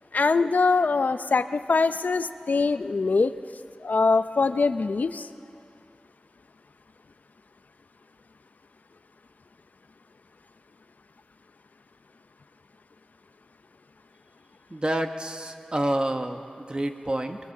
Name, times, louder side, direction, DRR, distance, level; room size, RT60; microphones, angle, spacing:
voice 1, 0.1-3.3 3.8-5.3, left 4 dB, 80° left, 11 dB, 0.7 m, -23 dB
voice 2, 14.7-17.4, right 1 dB, 35° right, 5 dB, 1.6 m, -28 dB
23.5 x 22.5 x 7.4 m, 2.5 s
wide cardioid pair, 55°, 3 cm